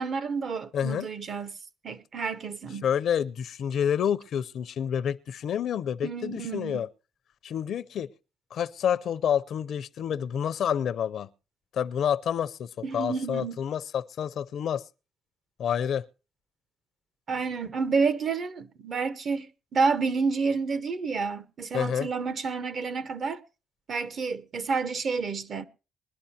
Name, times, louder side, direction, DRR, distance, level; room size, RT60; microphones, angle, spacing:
voice 1, 0.0-1.6 1.8-2.9 6.0-6.8 12.8-13.6 17.3-23.4 23.9-25.6, right 4 dB, 50° right, 0.9 m, -29 dB
voice 2, 0.7-1.1 2.8-6.9 7.4-8.1 8.5-11.3 11.7-12.7 12.9-14.8 15.6-16.0 21.7-22.1, left 8 dB, 70° left, 0.5 m, -28 dB
21.5 x 11.5 x 2.8 m
cardioid pair, 90°, 0 cm